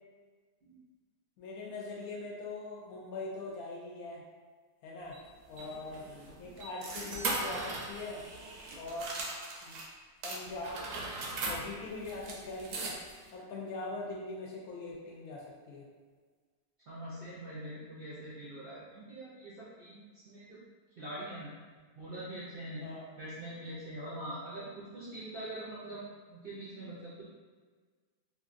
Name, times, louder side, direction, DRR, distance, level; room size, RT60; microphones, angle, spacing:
voice 1, 1.4-4.2 4.8-5.2 5.5-6.1 6.4-8.2 8.8-9.2 9.6-9.8 10.2-10.9 11.5-12.9 13.3-15.9 22.8-23.1, left 2 dB, 75° left, -3 dB, 1.0 m, -41 dB
sound 1, 5.1-9.9 10.2-13.3, right 2 dB, 80° right, 1.1 m, -39 dB
voice 2, 6.1-6.5 16.9-20.6 21.0-21.5 22.0-22.8 23.2-26.0 26.3-27.2, right 1 dB, 65° right, -9 dB, 0.6 m, -43 dB
3.0 x 2.5 x 2.5 m, 1.5 s
omnidirectional pair, 1.7 m